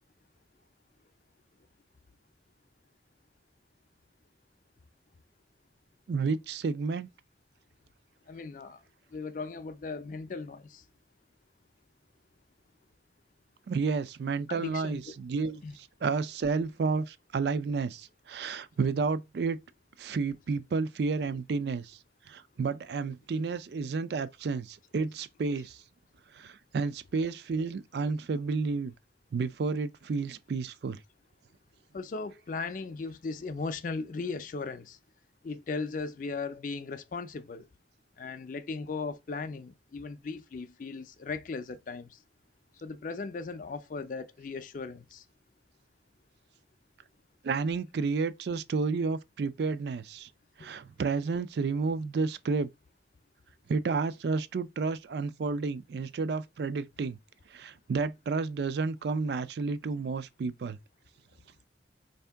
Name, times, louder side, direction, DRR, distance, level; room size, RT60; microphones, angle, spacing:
voice 1, 6.1-7.1 13.7-19.6 20.0-22.0 22.3-25.8 26.3-28.9 29.3-31.0 47.4-50.3 50.6-52.7 53.7-57.2 57.5-60.8, right 4 dB, 65° right, 0.4 m, -31 dB
voice 2, 8.3-8.8 9.1-10.8 14.5-15.2 15.6-15.7 25.6-25.7 31.9-35.0 35.4-37.7 38.2-42.2 42.8-45.2 50.6-50.7, left 4 dB, 45° left, 0.4 m, -37 dB
4.3 x 2.7 x 3.4 m
head